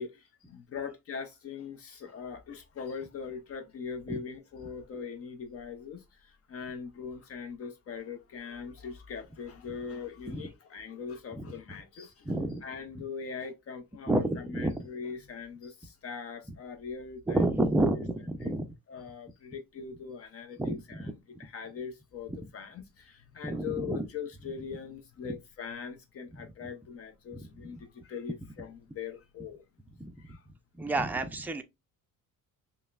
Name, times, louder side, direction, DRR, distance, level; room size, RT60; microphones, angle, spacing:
voice 1, 0.0-12.3 12.6-17.4 18.4-18.5 18.9-21.1 21.4-29.6 30.2-30.4, left 6 dB, 45° left, 0.6 m, -41 dB
voice 2, 12.3-12.6 14.1-14.8 17.3-18.7 20.6-21.1 22.3-22.4 23.4-24.1 27.3-27.5 30.0-30.1 30.8-31.6, right 2 dB, 5° right, 0.4 m, -29 dB
5.3 x 2.1 x 2.3 m
cardioid pair, 120°, 32 cm